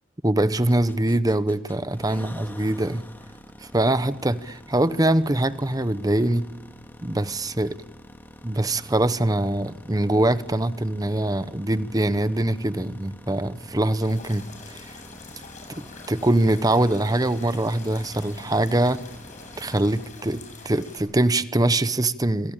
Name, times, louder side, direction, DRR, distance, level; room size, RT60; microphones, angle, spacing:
voice 1, 0.2-3.0 3.6-6.5 7.0-7.8 8.4-14.5 15.8-19.0 19.6-22.5, right 1 dB, 20° right, 14 dB, 0.9 m, -23 dB
sound 1, 0.7-20.1, left 1 dB, 10° left, 2.0 m, -47 dB
sound 2, 14.0-21.0, left 3 dB, 40° left, 7.2 m, -44 dB
26.5 x 25.0 x 8.9 m, 1.1 s
head